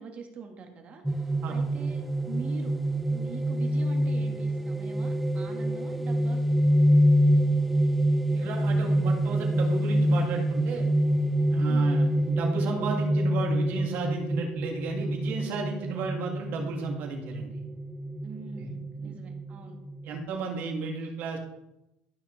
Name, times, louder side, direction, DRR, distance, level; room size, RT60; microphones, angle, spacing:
voice 1, 0.0-2.7 3.1-6.4 11.7-12.0 18.2-19.8, right 5 dB, 35° right, 4 dB, 1.6 m, -43 dB
sound 1, 1.0-20.2, equal, ahead, 0.4 m, -26 dB
voice 2, 8.3-10.9 11.5-17.5 18.6-18.7 19.0-19.2 20.0-21.4, right 4 dB, 55° right, 0 dB, 2.5 m, -34 dB
13.0 x 5.9 x 3.3 m, 0.87 s
supercardioid pair, 120°, 4 cm